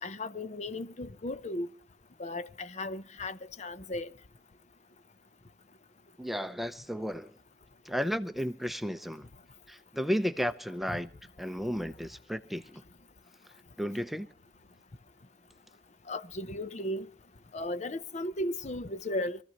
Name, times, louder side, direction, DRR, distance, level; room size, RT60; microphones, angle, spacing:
voice 1, 0.0-1.7 2.2-4.1 16.1-17.1 17.5-19.4, left 1 dB, 40° left, 0.7 m, -35 dB
voice 2, 6.2-7.3 7.9-9.3 9.7-11.1 11.4-12.6 13.8-14.3, equal, ahead, 0.7 m, -33 dB
26.0 x 14.5 x 3.0 m
head